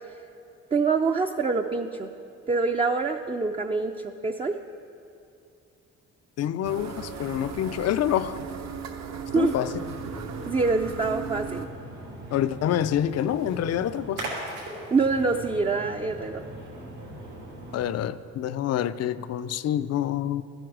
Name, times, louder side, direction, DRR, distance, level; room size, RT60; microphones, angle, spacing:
voice 1, 0.7-2.1 2.5-4.5 9.3-9.5 10.5-11.7 14.9-16.4, right 4 dB, 20° right, 0.4 m, -25 dB
voice 2, 6.4-8.4 9.4-9.7 12.3-14.2 17.7-20.4, left 11 dB, 55° left, 0.5 m, -27 dB
sound 1, 6.6-11.7, right 6 dB, 60° right, 0.8 m, -37 dB
Splash splatter, 9.3-17.9, right 1 dB, 90° right, 3.1 m, -40 dB
13.0 x 8.0 x 6.1 m
cardioid pair, 90°, 30 cm